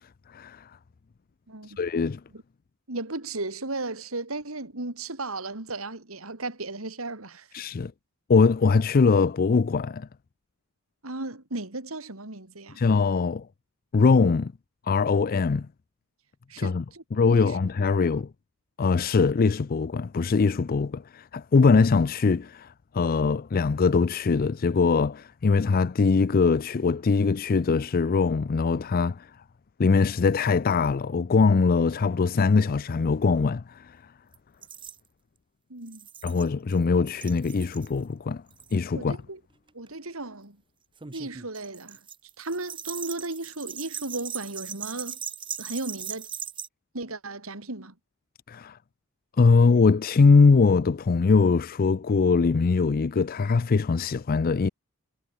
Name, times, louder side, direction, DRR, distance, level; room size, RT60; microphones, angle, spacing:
voice 1, 0.3-0.6 1.8-2.2 7.5-7.9 8.3-10.1 12.8-13.5 13.9-14.5 14.9-15.7 16.6-16.8 17.1-18.3 18.8-29.3 29.8-34.0 36.2-38.4 38.7-39.2 48.5-48.8 49.4-54.7, left 4 dB, 45° left, 0.4 m, -22 dB
voice 2, 1.5-1.8 2.3-2.4 2.9-7.5 11.0-12.8 16.5-17.6 17.9-18.2 35.7-36.0 38.9-39.4 39.7-40.6 41.1-42.0 42.4-45.2 45.6-46.3 46.9-47.9, right 2 dB, 75° right, 3.5 m, -35 dB
sound 1, 34.3-34.4 34.6-35.0 35.9-36.8 37.1-37.9 38.5-38.8 39.7-39.9 41.0-46.7, right 8 dB, 25° right, 0.8 m, -39 dB
head